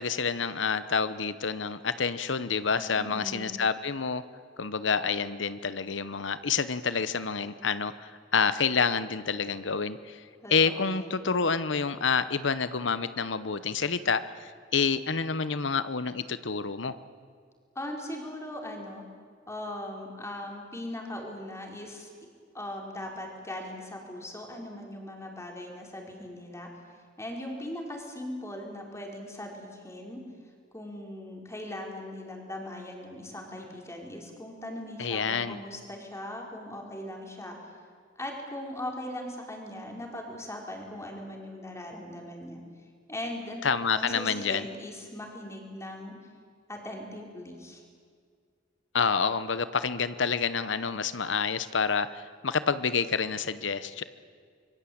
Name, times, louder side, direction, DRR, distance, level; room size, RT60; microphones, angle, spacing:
voice 1, 0.0-4.2 4.6-10.2 10.5-17.0 35.0-35.6 43.6-44.7 48.9-54.0, left 5 dB, 75° left, 13 dB, 1.0 m, -28 dB
voice 2, 2.8-3.6 10.4-11.2 17.7-19.0 19.5-22.1 22.5-26.7 27.2-30.2 30.7-37.6 38.2-42.6 43.1-43.6 43.9-46.1 46.7-47.8, left 1 dB, 15° left, 1 dB, 4.8 m, -39 dB
25.5 x 23.0 x 8.7 m, 2.1 s
head